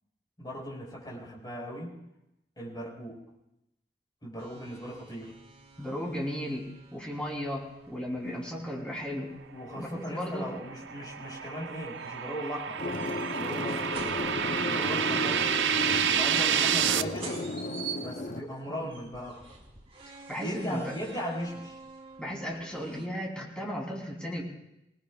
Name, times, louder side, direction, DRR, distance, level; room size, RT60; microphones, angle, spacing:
voice 1, 0.4-2.0 2.6-3.2 4.2-5.3 9.5-12.8 13.3-14.2 14.7-17.4 18.0-19.5 20.4-21.8, equal, 25° left, -3 dB, 5.2 m, -38 dB
sound 1, 4.4-23.1, right 5 dB, 30° right, 2.2 m, -49 dB
voice 2, 5.8-9.3 9.8-10.5 20.3-21.0 22.2-24.4, equal, 5° left, -3 dB, 3.3 m, -35 dB
sound 2, 10.2-17.0, right 8 dB, 75° right, 0.5 m, -29 dB
sound 3, 12.8-18.4, left 2 dB, 50° left, 0.7 m, -34 dB
25.5 x 19.0 x 2.4 m, 0.87 s
head